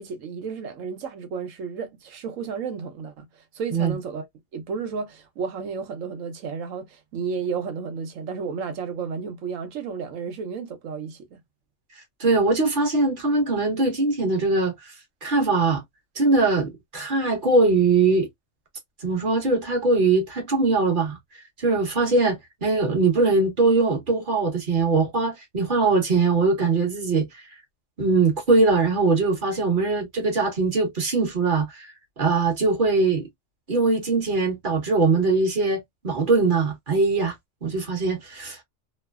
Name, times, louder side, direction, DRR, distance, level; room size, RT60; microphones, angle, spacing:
voice 1, 0.0-3.3 3.5-4.3 4.5-11.4, right 5 dB, 85° right, 1.1 m, -32 dB
voice 2, 12.2-14.7 15.2-15.8 16.2-18.3 19.0-21.2 21.6-27.3 28.0-31.9 32.2-33.2 33.7-37.3 37.6-38.6, right 3 dB, 45° right, 1.1 m, -21 dB
3.1 x 2.1 x 2.2 m
omnidirectional pair, 1.3 m